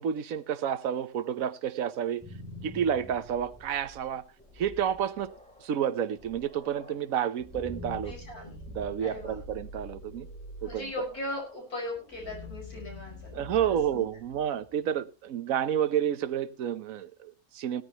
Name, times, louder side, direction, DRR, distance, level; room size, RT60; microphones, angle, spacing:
voice 1, 0.0-2.2 2.6-4.2 4.6-5.3 5.6-8.1 8.7-10.3 10.6-10.9 13.3-17.8, right 9 dB, 65° right, 12 dB, 1.3 m, -30 dB
sound 1, 2.0-14.8, left 2 dB, 5° left, 3.5 m, -46 dB
voice 2, 8.1-8.6 9.0-9.4 10.6-14.0, left 1 dB, 75° left, 0 dB, 6.0 m, -38 dB
17.0 x 13.5 x 3.0 m, 0.31 s
omnidirectional pair, 1.6 m